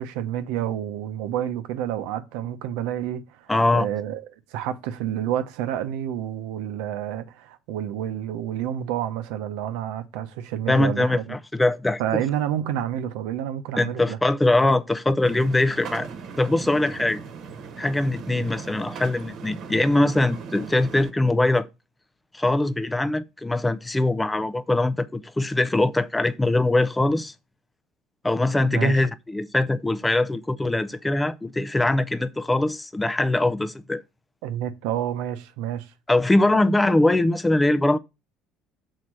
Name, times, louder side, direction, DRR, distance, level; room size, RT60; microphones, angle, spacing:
voice 1, 0.0-4.2 4.5-11.4 12.0-14.2 18.3-18.4 28.6-29.1 34.4-35.9, right 11 dB, 90° right, 0.9 m, -29 dB
voice 2, 3.5-3.9 10.7-12.2 13.8-16.1 16.4-17.2 17.8-21.7 22.3-27.3 28.2-34.0 36.1-38.0, left 2 dB, 10° left, 0.4 m, -22 dB
sound 1, 15.2-21.1, right 6 dB, 50° right, 1.2 m, -38 dB
6.5 x 4.2 x 6.2 m
cardioid pair, 140°, 0 cm